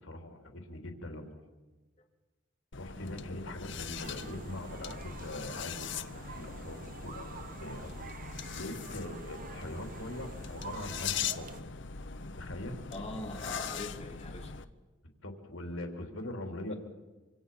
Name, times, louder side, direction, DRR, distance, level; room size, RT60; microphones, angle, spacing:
voice 1, 0.0-1.4 2.7-11.6 12.4-12.8 15.2-16.7, left 1 dB, 90° left, 3 dB, 3.4 m, -42 dB
sound 1, 2.7-14.7, left 6 dB, 65° left, 1.1 m, -41 dB
sound 2, 3.9-11.6, right 4 dB, 45° right, 1.1 m, -48 dB
voice 2, 12.9-14.5 16.7-16.8, left 2 dB, 35° left, -1 dB, 3.6 m, -42 dB
26.5 x 26.5 x 5.5 m, 1.2 s
head